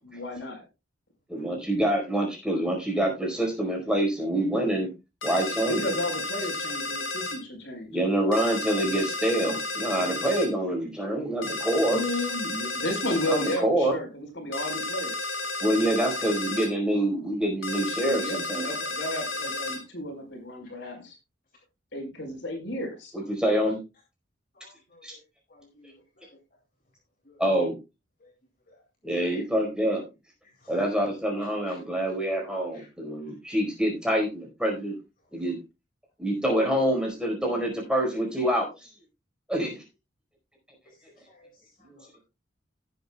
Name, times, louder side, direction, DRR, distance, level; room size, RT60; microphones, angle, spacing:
voice 1, 0.0-0.6 5.8-7.9 11.9-15.1 18.0-21.2 21.9-23.1, left 1 dB, 70° left, 4.6 m, -33 dB
voice 2, 1.3-4.9 5.2-5.8 7.9-12.0 13.3-14.0 15.6-18.7 23.1-23.8 25.0-25.1 27.4-27.8 29.0-30.0 30.7-34.9 35.3-35.6 36.2-38.9 39.5-39.8 41.9-42.0, right 1 dB, 5° right, 4.6 m, -26 dB
sound 1, 5.2-7.4 8.3-10.5 11.4-13.6 14.5-16.7 17.6-19.8, left 2 dB, 85° left, 4.2 m, -32 dB
voice 3, 24.5-25.2 25.5-26.4 27.2-27.4 28.2-28.3 28.7-28.8 30.4-30.8 31.7-31.8 32.7-32.9 40.9-42.2, left 2 dB, 45° left, 2.7 m, -57 dB
18.0 x 8.0 x 2.3 m
head